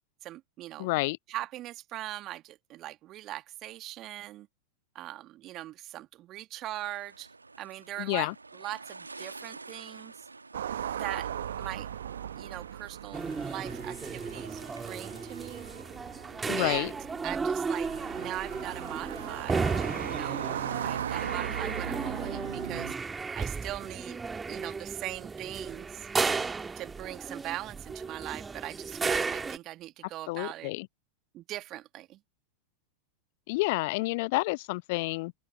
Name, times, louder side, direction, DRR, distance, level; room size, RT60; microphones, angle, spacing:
voice 1, 0.2-0.9 1.3-4.5 4.9-7.3 7.6-10.3 11.0-11.3 11.6-11.9 12.4-15.7 16.6-17.0 17.2-19.7 20.0-20.5 20.8-24.2 24.5-26.1 26.7-30.7 31.3-32.2, right 15 dB, 35° right, 1.4 m, -40 dB
voice 2, 0.8-1.2 8.0-8.3 16.5-16.9 30.3-30.9 33.5-35.3, left 24 dB, 50° left, 0.6 m, -29 dB
sound 1, 6.7-15.8, right 3 dB, 80° right, 1.6 m, -50 dB
sound 2, 10.5-22.9, right 9 dB, 65° right, 1.1 m, -38 dB
sound 3, 13.1-29.6, right 4 dB, 15° right, 1.7 m, -34 dB
open air
figure-of-eight pair, 90°, 0 cm